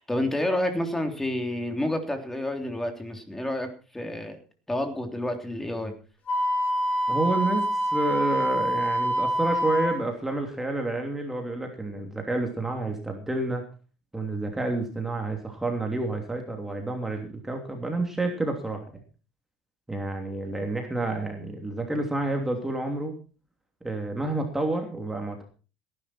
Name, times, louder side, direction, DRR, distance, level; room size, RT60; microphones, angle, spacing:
voice 1, 0.0-4.4 4.7-5.9, left 1 dB, 10° left, 5 dB, 3.3 m, -29 dB
Wind instrument woodwind instrument, 6.3-10.0, equal, 35° left, 6.7 m, -26 dB
voice 2, 7.1-13.6 14.1-18.8 19.9-23.1 23.8-25.4, right 2 dB, 10° right, 3 dB, 3.0 m, -29 dB
17.5 x 11.0 x 4.4 m, 0.36 s
supercardioid pair, 115°, 4 cm